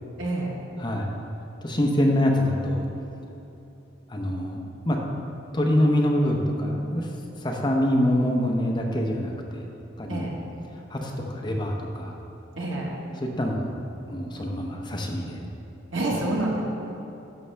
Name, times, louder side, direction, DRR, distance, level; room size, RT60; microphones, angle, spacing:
voice 1, 0.2-0.5 10.1-10.4 12.6-12.9 15.9-16.6, right 2 dB, 90° right, -2 dB, 1.4 m, -27 dB
voice 2, 0.8-1.1 1.6-2.8 4.1-4.6 4.9-5.0 5.5-7.1 7.4-9.7 10.0-10.3 10.9-12.2 13.2-13.8 14.1-15.4, left 1 dB, 25° left, 0 dB, 0.8 m, -25 dB
11.0 x 6.3 x 3.3 m, 3.0 s
head